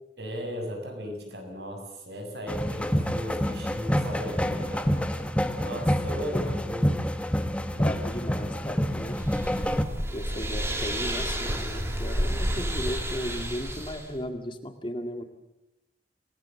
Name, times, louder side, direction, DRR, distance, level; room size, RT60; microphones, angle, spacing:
voice 1, 0.2-4.9 5.6-6.9, equal, 70° right, 3 dB, 6.8 m, -36 dB
sound 1, 2.5-9.8, equal, 5° left, 1.3 m, -27 dB
voice 2, 7.8-9.2 10.1-15.2, left 1 dB, 30° left, 6 dB, 2.0 m, -36 dB
sound 2, 8.8-14.1, equal, 15° right, 2.8 m, -31 dB
28.5 x 18.0 x 7.6 m, 0.88 s
head